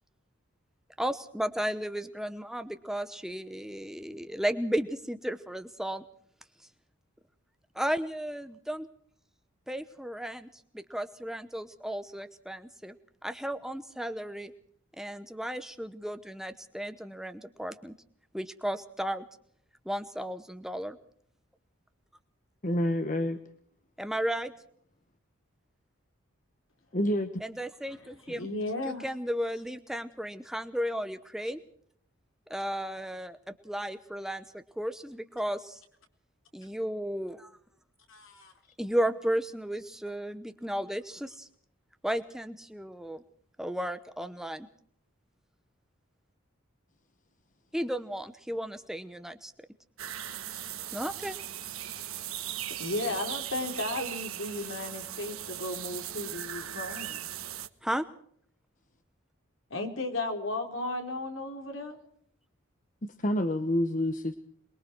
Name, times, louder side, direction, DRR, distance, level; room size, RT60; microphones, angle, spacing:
voice 1, 1.0-6.0 7.7-8.9 9.7-10.5 10.7-12.9 13.2-14.5 15.0-17.9 18.3-19.3 19.9-21.0 24.0-24.5 27.4-28.5 28.8-31.6 32.5-35.8 36.5-37.6 38.8-41.5 42.0-43.2 43.6-44.7 47.7-49.5 50.9-51.4 57.8-58.1, equal, ahead, 9 dB, 0.9 m, -34 dB
voice 2, 22.6-23.4 26.9-27.4 63.0-64.4, left 1 dB, 35° left, 9 dB, 1.1 m, -28 dB
voice 3, 28.3-29.1 38.1-38.5 52.5-57.3 59.7-62.0, left 2 dB, 70° left, 4 dB, 4.1 m, -35 dB
sound 1, 50.0-57.7, right 11 dB, 85° right, 1.5 m, -38 dB
27.5 x 21.5 x 4.6 m, 0.64 s
head